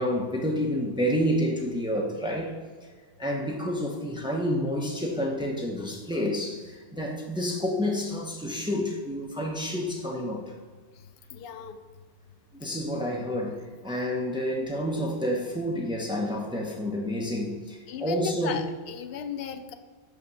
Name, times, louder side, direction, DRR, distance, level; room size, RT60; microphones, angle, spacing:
voice 1, 0.0-2.5 3.2-10.5 12.5-18.6, equal, 5° right, 0 dB, 0.7 m, -29 dB
voice 2, 11.3-11.8 17.9-19.7, left 8 dB, 65° left, 8 dB, 0.8 m, -35 dB
8.2 x 2.9 x 5.3 m, 1.5 s
omnidirectional pair, 1.1 m